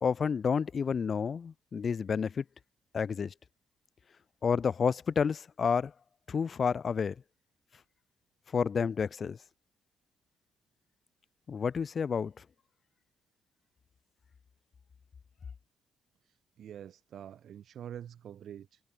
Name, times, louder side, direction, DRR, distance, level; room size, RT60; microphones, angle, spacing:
voice 1, 0.0-2.4 2.9-3.3 4.4-5.9 6.3-7.1 8.5-9.4 11.5-12.3, left 6 dB, 40° left, 2.4 m, -30 dB
voice 2, 16.6-18.8, right 9 dB, 65° right, 5.1 m, -45 dB
cardioid pair, 110°, 0 cm